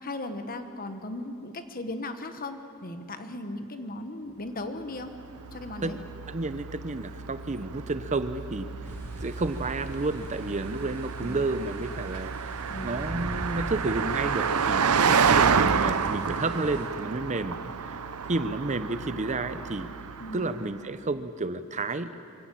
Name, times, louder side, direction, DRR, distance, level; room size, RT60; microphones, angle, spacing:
voice 1, 0.0-5.1 5.5-6.0 11.2-11.4 12.7-12.9 20.2-20.5, left 2 dB, 40° left, 8 dB, 1.3 m, -37 dB
Car passing by, 5.0-20.7, right 6 dB, 80° right, 0.8 m, -29 dB
voice 2, 6.3-8.9 9.2-17.6 17.9-18.0 18.3-19.9 20.3-22.1, right 2 dB, 35° right, 11 dB, 0.7 m, -31 dB
sound 1, 8.9-16.9, equal, 10° left, 3.7 m, -44 dB
25.0 x 17.5 x 7.7 m, 2.6 s
head